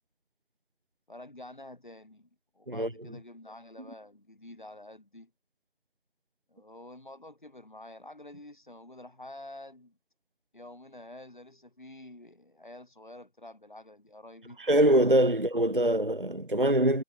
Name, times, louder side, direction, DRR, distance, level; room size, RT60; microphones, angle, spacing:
voice 1, 1.1-5.3 6.5-10.0 10.5-14.6, left 1 dB, 40° left, 3.6 m, -48 dB
voice 2, 14.6-17.0, right 1 dB, 45° right, 0.6 m, -23 dB
figure-of-eight pair, 180°, 37 cm